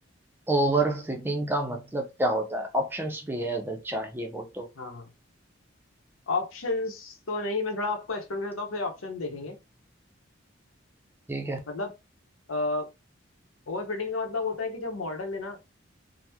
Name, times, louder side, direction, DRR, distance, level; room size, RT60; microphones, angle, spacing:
voice 1, 0.5-4.7 11.3-11.6, right 1 dB, 10° right, 0.4 m, -28 dB
voice 2, 6.3-9.6 11.7-11.9 12.5-12.9 13.7-15.6, left 3 dB, 85° left, 0.8 m, -31 dB
2.9 x 2.0 x 3.4 m
head